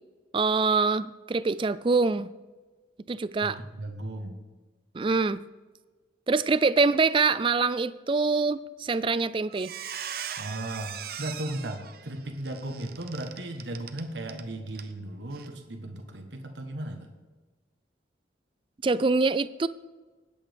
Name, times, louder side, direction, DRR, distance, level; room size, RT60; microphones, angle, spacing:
voice 1, 0.3-2.3 3.1-3.6 4.9-5.4 6.3-9.7 18.8-19.7, right 4 dB, 30° right, 15 dB, 0.3 m, -24 dB
voice 2, 3.4-4.4 10.4-17.1, right 1 dB, 75° right, 4 dB, 1.2 m, -36 dB
Squeak, 8.9-9.2 9.5-14.4 14.7-14.9 15.3-15.5, right 9 dB, 55° right, 0.7 m, -39 dB
19.0 x 8.5 x 3.5 m, 1.3 s
head